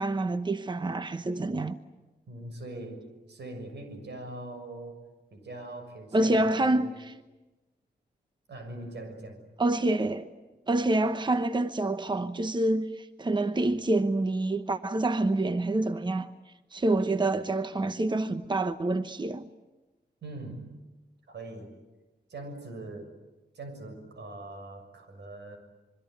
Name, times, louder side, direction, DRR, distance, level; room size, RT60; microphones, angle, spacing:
voice 1, 0.0-1.8 6.1-7.1 9.6-10.3 10.7-16.3 16.7-19.5, right 2 dB, 25° right, 1.0 m, -27 dB
voice 2, 2.3-6.9 8.5-9.5 20.2-20.8 21.2-21.8 22.3-23.2 23.5-25.6, right 2 dB, 90° right, 6.6 m, -42 dB
26.0 x 23.5 x 9.4 m
wide cardioid pair, 125°, 17 cm